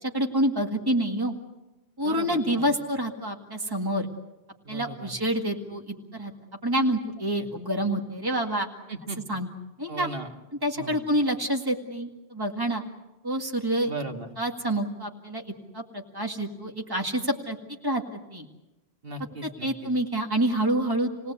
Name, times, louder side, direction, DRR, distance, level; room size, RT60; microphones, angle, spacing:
voice 1, 0.0-1.3 2.0-4.1 4.7-6.3 6.6-8.7 9.3-9.5 9.8-10.1 10.6-12.8 13.2-13.9 14.4-15.4 15.7-17.6 17.8-18.5 19.4-21.3, right 1 dB, 20° right, 2 dB, 2.1 m, -27 dB
voice 2, 2.0-2.7 4.6-5.1 7.4-7.5 8.9-9.2 9.9-10.3 10.8-11.1 13.8-14.3 19.0-19.9, right 3 dB, 60° right, 3 dB, 2.1 m, -37 dB
28.5 x 18.5 x 8.2 m, 1.0 s
omnidirectional pair, 1.1 m